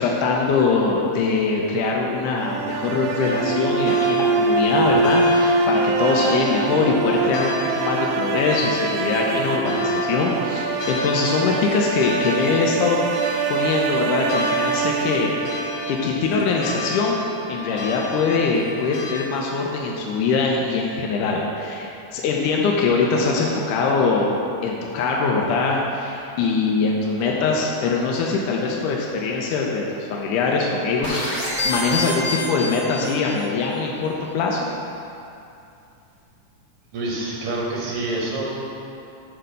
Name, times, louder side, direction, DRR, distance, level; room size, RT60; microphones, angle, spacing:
voice 1, 0.0-24.4 24.6-34.7, left 4 dB, 85° left, -1 dB, 2.2 m, -22 dB
sound 1, 2.4-16.5, right 3 dB, 80° right, 1.8 m, -24 dB
sound 2, 3.2-19.2, left 2 dB, 65° left, 1.5 m, -34 dB
sound 3, 31.0-33.5, left 1 dB, 25° left, 0.8 m, -27 dB
voice 2, 36.9-38.6, right 2 dB, 60° right, -3 dB, 1.6 m, -27 dB
6.2 x 5.6 x 6.6 m, 2.7 s
omnidirectional pair, 3.6 m